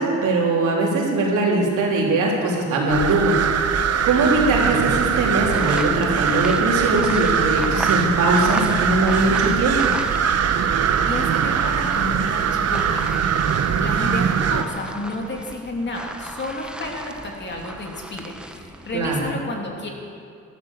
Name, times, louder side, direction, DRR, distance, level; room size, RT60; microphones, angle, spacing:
voice 1, 0.0-9.8 18.9-19.2, right 2 dB, 80° right, -2 dB, 3.7 m, -21 dB
sound 1, 2.9-14.6, right 7 dB, 55° right, 1.0 m, -21 dB
sound 2, 5.4-10.5 10.7-19.3, right 1 dB, 5° right, 1.0 m, -36 dB
voice 2, 11.0-13.2 13.8-19.9, left 2 dB, 35° left, 0 dB, 2.9 m, -31 dB
13.0 x 12.5 x 7.3 m, 2.4 s
cardioid pair, 90°, 30 cm